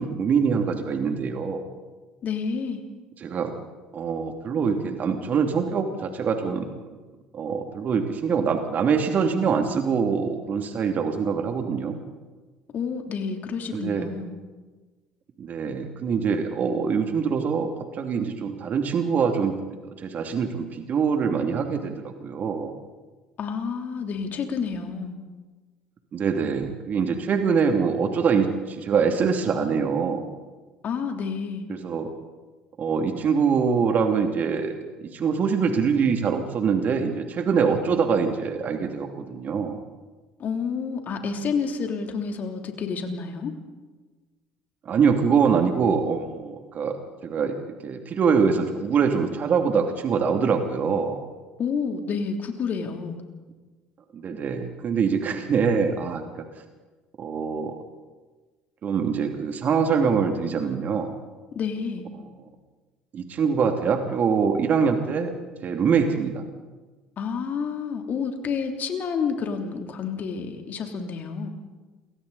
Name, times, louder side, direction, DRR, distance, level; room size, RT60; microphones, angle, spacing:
voice 1, 0.0-1.6 3.2-3.6 3.9-6.7 7.3-12.0 13.7-14.1 15.4-19.5 20.0-22.7 26.1-30.2 31.7-32.1 32.8-34.7 35.0-39.8 44.8-47.5 47.8-51.2 54.1-56.2 57.2-57.8 58.8-61.1 63.1-65.3 65.6-66.4, right 6 dB, 45° right, 4 dB, 2.8 m, -24 dB
voice 2, 2.2-2.8 12.7-14.3 23.4-25.2 30.8-31.6 40.4-43.5 51.6-53.2 61.5-62.1 67.2-71.5, left 5 dB, 50° left, 4 dB, 3.2 m, -29 dB
28.5 x 24.0 x 4.2 m, 1.3 s
hypercardioid pair, 60°, 4 cm